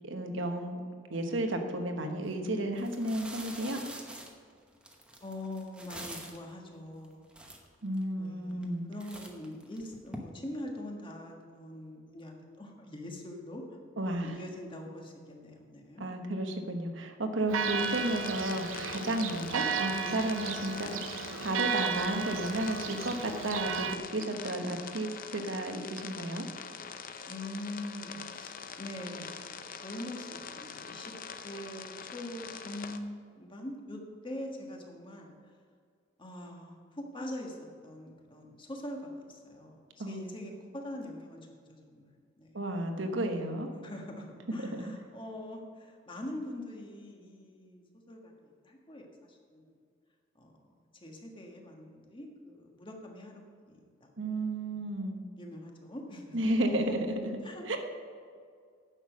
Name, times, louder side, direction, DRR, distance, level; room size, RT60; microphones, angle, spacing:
voice 1, 0.0-0.8 1.1-3.8 7.8-8.8 14.0-14.4 16.0-21.0 21.4-26.5 40.0-40.2 42.5-43.7 44.6-44.9 54.2-55.2 56.3-57.2 57.7-57.8, right 1 dB, 70° right, 5 dB, 1.2 m, -33 dB
sound 1, 2.2-2.3 2.7-6.5 7.0-7.1 7.3-8.0 8.5-8.7 9.0-10.2, right 1 dB, 5° right, 1.0 m, -46 dB
voice 2, 5.2-7.3 8.2-13.6 14.2-16.1 27.3-29.4 29.8-31.1 31.4-35.3 36.2-37.6 37.8-41.4 41.7-42.0 42.4-42.5 43.7-49.8 50.3-50.5 51.0-54.1 54.7-54.9 55.4-56.5 57.4-57.8, left 1 dB, 25° left, 1 dB, 1.5 m, -43 dB
Church bell, 17.5-24.0, right 6 dB, 85° right, 0.6 m, -34 dB
sound 2, 17.8-33.0, left 6 dB, 45° left, 0.6 m, -44 dB
9.9 x 6.9 x 6.3 m, 2.1 s
head